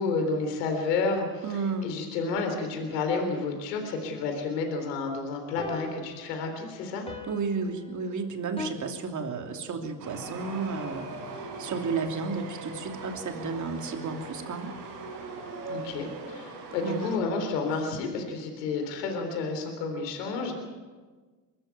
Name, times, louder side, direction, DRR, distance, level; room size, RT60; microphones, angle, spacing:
voice 1, 0.0-7.1 15.7-20.5, left 4 dB, 80° left, 4 dB, 3.8 m, -30 dB
voice 2, 1.4-2.0 7.3-14.7 16.8-17.2, right 4 dB, 35° right, 4 dB, 3.0 m, -33 dB
sound 1, 5.6-8.7, left 2 dB, 10° left, 2.4 m, -42 dB
Chatter / Subway metro underground, 10.0-17.2, right 3 dB, 90° right, 5.5 m, -40 dB
23.0 x 14.0 x 9.3 m, 1.4 s
hypercardioid pair, 85°, 48 cm